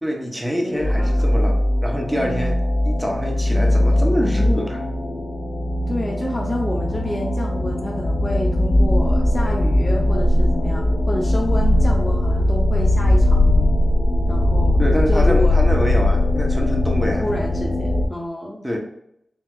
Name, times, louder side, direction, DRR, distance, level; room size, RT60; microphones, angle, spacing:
voice 1, 0.0-4.8 14.8-17.2 18.6-18.8, equal, 5° right, 1 dB, 1.0 m, -25 dB
voice 2, 0.6-1.4 5.9-13.7 14.3-15.6 17.2-18.8, left 1 dB, 20° left, -1 dB, 0.7 m, -29 dB
sound 1, 0.7-18.0, left 1 dB, 90° left, 0.9 m, -19 dB
4.6 x 3.5 x 2.4 m, 0.75 s
wide cardioid pair, 75°, 0 cm